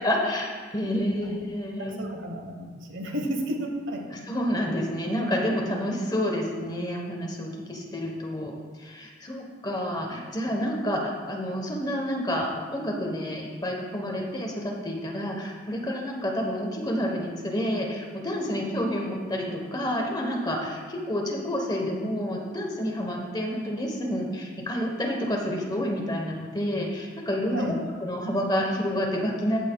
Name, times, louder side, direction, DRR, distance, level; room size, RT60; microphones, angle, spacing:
voice 1, 0.0-2.0 4.3-8.5 8.8-27.7 28.0-29.6, equal, 20° left, 0 dB, 1.1 m, -29 dB
voice 2, 1.8-4.1 27.5-27.9, equal, 85° right, 2 dB, 1.1 m, -32 dB
15.0 x 5.8 x 2.3 m, 1.5 s
head